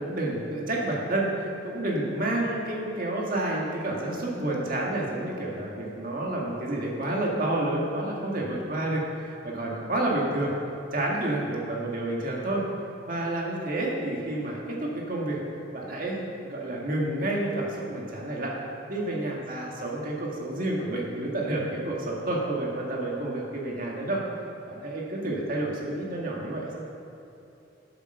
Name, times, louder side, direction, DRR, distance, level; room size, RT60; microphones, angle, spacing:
voice 1, 0.0-10.5 10.9-12.6 13.1-15.4 15.7-18.6 18.9-24.2 24.7-26.8, right 1 dB, 45° right, -2 dB, 1.9 m, -29 dB
8.8 x 8.1 x 6.7 m, 2.9 s
head